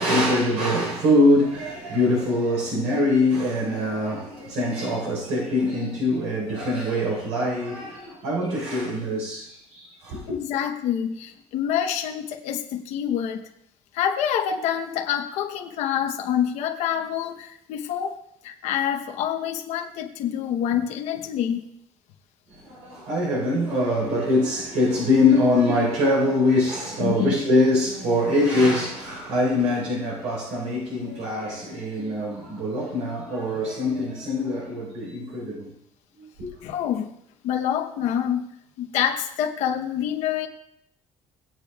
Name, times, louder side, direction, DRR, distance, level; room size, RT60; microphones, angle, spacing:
voice 1, 0.0-10.2 22.6-35.7 36.4-36.5, left 1 dB, 80° right, 4.2 m, -23 dB
voice 2, 10.3-13.4 13.9-18.2 18.4-21.7 27.0-27.4 36.6-37.1 37.4-38.5 38.8-40.5, left 9 dB, 70° left, 1.0 m, -26 dB
18.0 x 8.8 x 2.4 m
cardioid pair, 165°, 12 cm